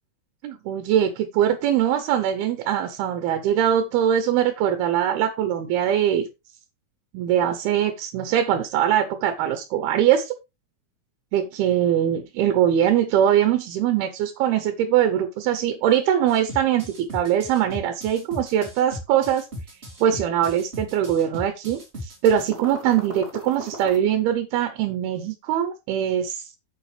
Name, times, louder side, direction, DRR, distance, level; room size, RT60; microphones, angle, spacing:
voice 1, 0.4-6.3 7.1-10.4 11.3-19.5 20.0-26.5, right 10 dB, 80° right, 9 dB, 2.9 m, -22 dB
sound 1, 16.3-24.0, equal, 20° right, 2.2 m, -37 dB
9.1 x 7.5 x 3.3 m, 0.24 s
omnidirectional pair, 4.5 m